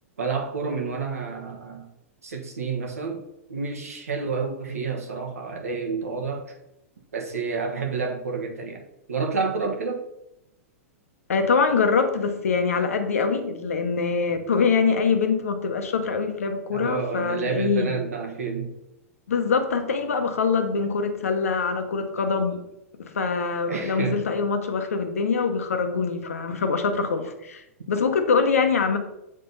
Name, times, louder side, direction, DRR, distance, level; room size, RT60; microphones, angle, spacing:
voice 1, 0.2-1.9 2.2-6.6 7.1-10.0 16.7-18.7 23.7-24.2, right 5 dB, 80° right, 3 dB, 1.3 m, -29 dB
voice 2, 11.3-18.0 19.3-22.6 23.0-29.0, left 5 dB, 75° left, 7 dB, 0.9 m, -24 dB
7.5 x 3.8 x 4.0 m, 0.86 s
hypercardioid pair, 110°, 8 cm